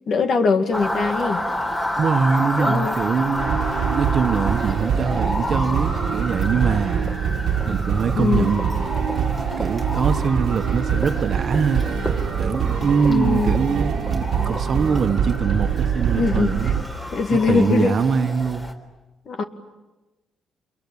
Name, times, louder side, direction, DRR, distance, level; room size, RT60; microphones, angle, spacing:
voice 1, 0.1-1.4 2.7-2.9 8.2-8.5 13.1-13.6 16.2-16.7 17.1-18.0 19.3-19.4, left 4 dB, 55° left, 2.3 m, -21 dB
Motor vehicle (road) / Siren, 0.7-18.7, left 1 dB, 25° left, 4.0 m, -30 dB
voice 2, 2.0-7.0 7.7-8.7 9.6-12.1 12.4-16.7 17.3-18.7, right 5 dB, 55° right, 1.4 m, -23 dB
sound 1, 3.4-16.8, right 7 dB, 75° right, 1.6 m, -24 dB
28.5 x 22.5 x 8.9 m
cardioid pair, 90°, 0 cm